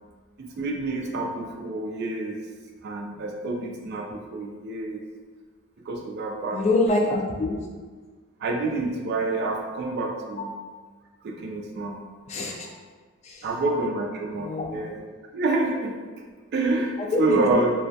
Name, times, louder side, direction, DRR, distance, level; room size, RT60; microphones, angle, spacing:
voice 1, 0.4-2.4 2.8-5.0 5.9-6.6 8.4-10.5 11.2-12.0 13.4-15.0 15.3-16.3 16.5-17.7, right 2 dB, 55° right, 1 dB, 0.3 m, -28 dB
voice 2, 6.5-7.6 10.4-10.5 12.3-12.7 13.2-13.5 14.3-14.8 17.1-17.5, left 2 dB, 35° left, 0 dB, 0.3 m, -25 dB
2.3 x 2.1 x 2.6 m, 1.4 s
head